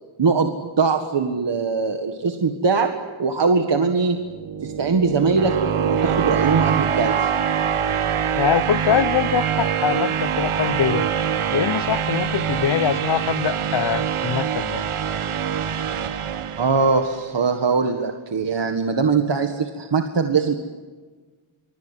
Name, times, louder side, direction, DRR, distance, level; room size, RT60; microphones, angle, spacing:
voice 1, 0.2-2.9 3.2-4.2 4.6-7.3 15.9-16.1 16.6-20.6, right 4 dB, 55° right, 1.8 m, -21 dB
sound 1, 4.2-17.2, right 8 dB, 80° right, 1.2 m, -24 dB
voice 2, 8.3-11.1 11.5-14.9, left 8 dB, 55° left, 0.8 m, -23 dB
25.0 x 24.0 x 9.9 m
wide cardioid pair, 175°, 50 cm